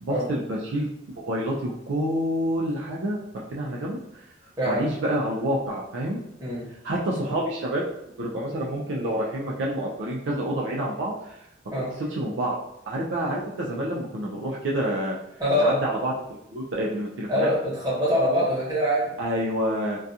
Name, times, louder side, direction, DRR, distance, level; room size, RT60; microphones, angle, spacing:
voice 1, 0.0-4.0 4.6-6.2 6.8-7.8 8.2-11.4 12.0-12.6 12.9-15.2 15.6-16.1 16.5-17.5 19.2-20.0, right 1 dB, 65° right, -3 dB, 0.4 m, -28 dB
voice 2, 4.6-4.9 6.4-6.7 11.7-11.9 15.4-15.8 17.3-19.1, equal, 20° right, -8 dB, 1.0 m, -24 dB
2.4 x 2.2 x 2.7 m, 0.80 s
head